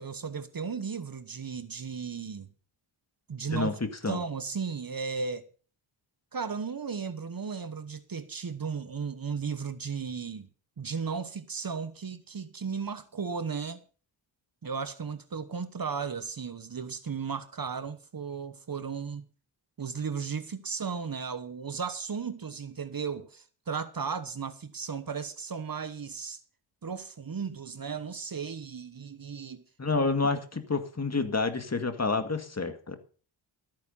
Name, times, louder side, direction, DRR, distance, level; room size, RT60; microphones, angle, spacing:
voice 1, 0.0-2.5 3.3-3.8 4.1-5.4 6.3-10.5 10.8-13.8 14.6-19.2 19.8-26.4 26.8-29.6, right 5 dB, 45° right, 1.1 m, -35 dB
voice 2, 3.5-4.2 29.8-33.0, left 3 dB, 30° left, 2.0 m, -29 dB
14.0 x 9.0 x 5.5 m
wide cardioid pair, 80°, 49 cm